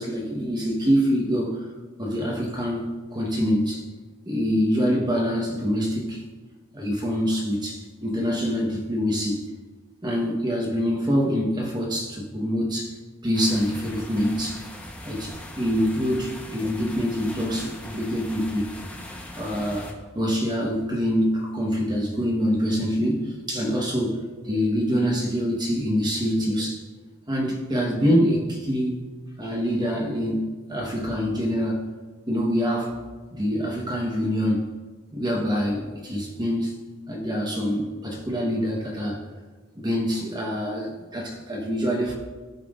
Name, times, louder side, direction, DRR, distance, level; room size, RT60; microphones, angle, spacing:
voice 1, 0.0-1.6 2.0-3.8 4.3-6.2 6.7-9.4 10.0-12.9 13.2-14.6 15.0-18.7 19.4-26.8 27.3-29.0 29.4-31.8 32.3-33.0 33.3-34.7 35.1-36.8 37.1-39.2 39.8-42.1, equal, 20° right, -1 dB, 1.1 m, -25 dB
sound 1, 13.3-19.9, left 1 dB, 5° left, 0.9 m, -40 dB
14.5 x 5.9 x 2.4 m, 1.3 s
head